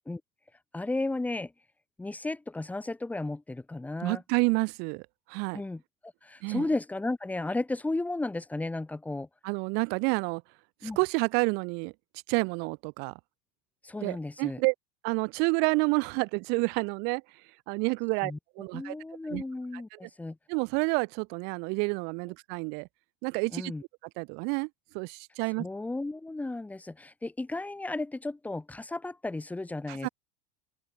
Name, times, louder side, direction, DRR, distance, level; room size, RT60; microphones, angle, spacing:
voice 1, 0.7-1.5 2.0-4.2 5.5-9.3 10.8-11.0 13.8-14.6 18.2-18.4 18.7-20.4 23.5-23.8 25.6-30.1, left 2 dB, 5° left, 2.9 m, -34 dB
voice 2, 4.0-5.6 6.4-6.6 9.4-10.4 10.8-11.9 12.3-13.1 14.0-14.7 15.0-17.2 17.7-19.0 19.3-19.4 19.9-20.0 20.5-22.9 23.2-23.7 24.2-24.7 24.9-25.7 29.9-30.1, right 33 dB, 55° right, 1.2 m, -29 dB
open air
supercardioid pair, 130°, 20 cm